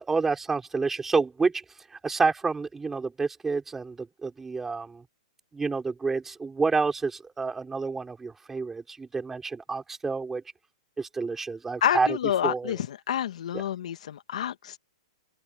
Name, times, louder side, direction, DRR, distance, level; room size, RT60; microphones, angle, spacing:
voice 1, 0.0-1.6 2.0-5.0 5.5-10.4 11.0-12.2 12.4-12.8 13.5-13.6, right 4 dB, 10° right, 4.6 m, -28 dB
voice 2, 11.8-14.8, left 10 dB, 70° left, 1.9 m, -28 dB
open air
hypercardioid pair, 150°, 4 cm